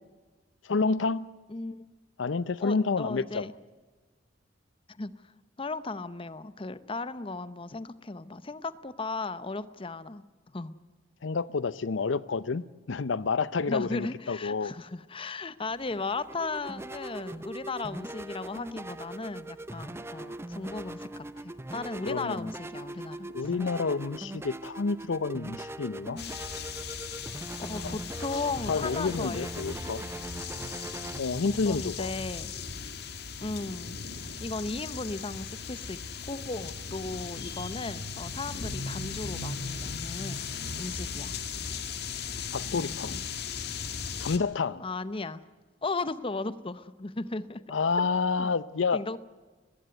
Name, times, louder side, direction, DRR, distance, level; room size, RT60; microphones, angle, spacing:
voice 1, 0.6-1.3 2.2-3.5 11.2-14.7 22.1-22.5 23.3-26.2 27.8-28.0 28.7-30.0 31.2-32.1 42.5-43.2 44.2-44.8 47.7-49.0, left 4 dB, 85° left, 0.6 m, -29 dB
voice 2, 1.5-1.9 2.6-3.5 4.9-5.3 5.6-10.2 10.5-10.7 13.7-23.3 27.7-29.5 29.8-29.9 31.6-32.5 33.4-36.0 36.3-40.5 40.8-41.4 42.7-43.2 44.8-45.4 45.8-47.6 48.4-48.5 48.9-49.2, left 3 dB, 30° left, 0.8 m, -36 dB
sound 1, 15.7-33.9, right 1 dB, 15° right, 0.6 m, -41 dB
sound 2, 26.2-44.4, left 5 dB, 60° left, 1.6 m, -37 dB
20.5 x 15.5 x 9.5 m
head